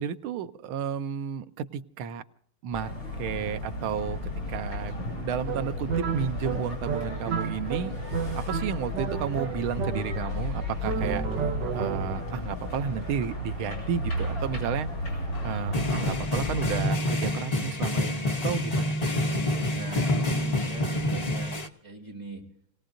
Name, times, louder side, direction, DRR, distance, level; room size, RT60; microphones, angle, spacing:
voice 1, 0.0-2.2 2.6-2.9 3.2-11.3 11.7-14.9 15.4-18.9, right 7 dB, 80° right, 10 dB, 1.6 m, -32 dB
sound 1, 2.7-16.9, left 1 dB, 65° left, 8.2 m, -34 dB
sound 2, 5.4-10.4 10.8-12.4, right 6 dB, 60° right, 1.5 m, -32 dB
sound 3, 14.1-14.4 15.3-21.7, left 1 dB, 40° left, 0.5 m, -27 dB
voice 2, 19.7-21.6 21.8-22.4, right 2 dB, 30° right, -1 dB, 5.7 m, -41 dB
29.5 x 18.0 x 2.6 m, 0.70 s
omnidirectional pair, 2.3 m